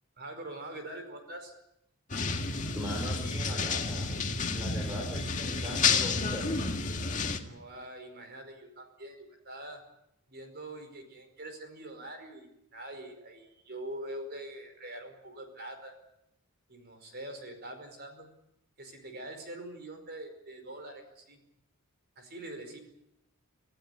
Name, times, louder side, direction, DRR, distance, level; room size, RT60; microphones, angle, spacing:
voice 1, 0.2-1.5 7.4-9.8 10.3-15.9 16.7-18.3 18.8-21.4 22.1-22.8, right 1 dB, 45° right, 6 dB, 5.1 m, -44 dB
sound 1, 2.1-7.4, left 4 dB, 35° left, 1.9 m, -30 dB
voice 2, 2.7-4.1 4.5-6.7, equal, 10° right, -1 dB, 4.6 m, -40 dB
26.0 x 15.5 x 9.6 m, 0.82 s
head